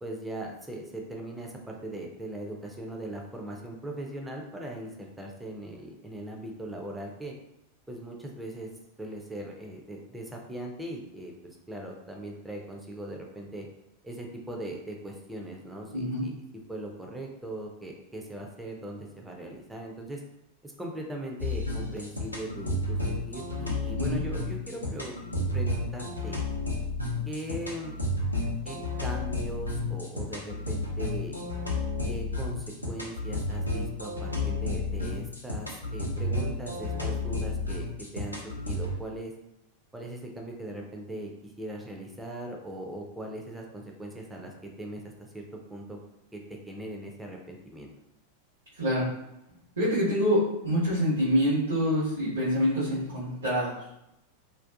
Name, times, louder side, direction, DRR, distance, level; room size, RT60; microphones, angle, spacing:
voice 1, 0.0-7.4 7.9-8.7 9.0-13.7 14.0-16.3 16.7-20.2 20.6-25.2 25.5-26.4 27.3-28.0 28.6-31.5 32.1-39.3 39.9-44.5 44.8-45.0 45.3-46.0 46.3-46.4 46.7-47.9, right 1 dB, 5° right, 0 dB, 0.4 m, -39 dB
voice 2, 15.9-16.3 24.0-24.2 48.8-49.1 49.8-53.8, equal, 65° right, -10 dB, 0.9 m, -26 dB
sound 1, 21.4-39.0, left 2 dB, 85° left, 0.5 m, -32 dB
2.5 x 2.3 x 2.3 m, 0.86 s
figure-of-eight pair, 90°, 0 cm